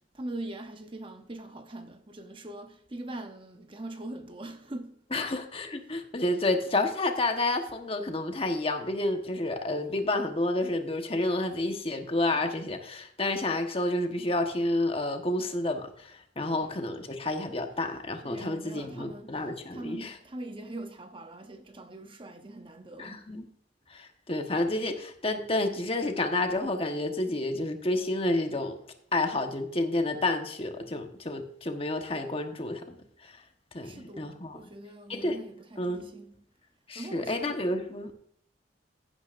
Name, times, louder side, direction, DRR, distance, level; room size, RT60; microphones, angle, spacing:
voice 1, 0.1-5.3 18.2-19.3 19.7-23.2 33.8-36.3 37.0-37.5, right 1 dB, 25° right, 0.8 m, -42 dB
voice 2, 5.1-20.2 23.0-23.4 23.9-28.8 29.1-33.0 33.2-33.3 33.7-34.6 35.1-35.4 35.8-36.0 36.9-38.1, left 2 dB, 30° left, 1.3 m, -30 dB
16.0 x 9.5 x 2.6 m
head